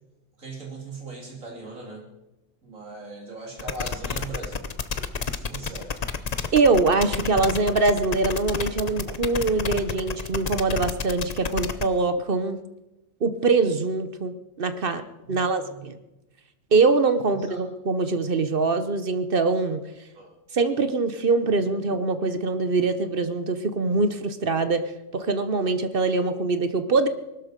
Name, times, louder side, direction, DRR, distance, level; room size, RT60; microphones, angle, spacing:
voice 1, 0.4-2.0 2.6-4.7 5.3-6.1 15.3-15.9 17.5-17.6 20.2-20.3, right 3 dB, 70° right, 0 dB, 3.5 m, -39 dB
sound 1, 3.6-11.8, left 5 dB, 40° left, 0.7 m, -30 dB
voice 2, 6.5-12.6 13.2-15.0 15.3-16.0 16.7-19.8 20.5-24.8 25.1-27.1, right 3 dB, 45° right, 11 dB, 1.0 m, -23 dB
20.0 x 12.5 x 5.1 m, 0.98 s
omnidirectional pair, 1.4 m